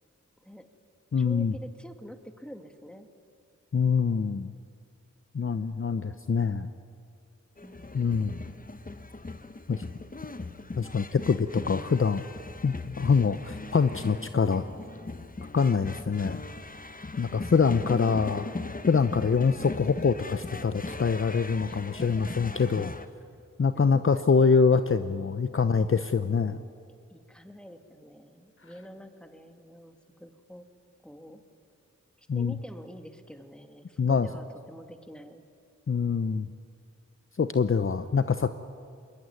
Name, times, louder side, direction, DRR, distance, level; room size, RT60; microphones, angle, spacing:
voice 1, 0.4-0.7 1.2-3.1 5.4-6.0 7.6-7.9 9.1-9.2 21.7-22.1 23.9-24.2 27.1-30.6 31.0-31.4 32.2-35.4 38.0-38.1, equal, 5° left, 6 dB, 2.3 m, -47 dB
voice 2, 1.1-1.5 3.7-4.5 5.3-6.7 7.9-8.4 9.7-9.8 10.8-12.2 12.6-14.7 15.5-16.4 17.2-18.5 18.9-22.9 23.6-26.6 32.3-32.5 34.0-34.3 35.9-36.5 37.4-38.5, left 5 dB, 45° left, 10 dB, 0.8 m, -25 dB
sound 1, 7.6-23.1, left 3 dB, 30° left, 1.1 m, -39 dB
22.0 x 20.0 x 9.7 m, 2.3 s
cardioid pair, 50°, 30 cm